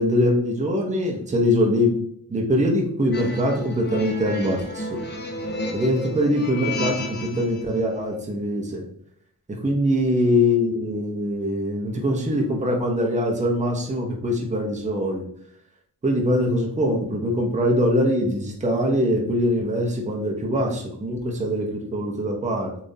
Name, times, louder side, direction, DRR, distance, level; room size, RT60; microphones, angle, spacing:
voice 1, 0.0-1.9 2.3-5.0 5.7-8.8 9.6-15.2 16.0-22.7, equal, 20° right, 0 dB, 0.7 m, -23 dB
sound 1, 3.1-7.6, left 1 dB, 25° left, 0.7 m, -32 dB
6.7 x 2.6 x 2.7 m, 0.66 s
wide cardioid pair, 170°, 40 cm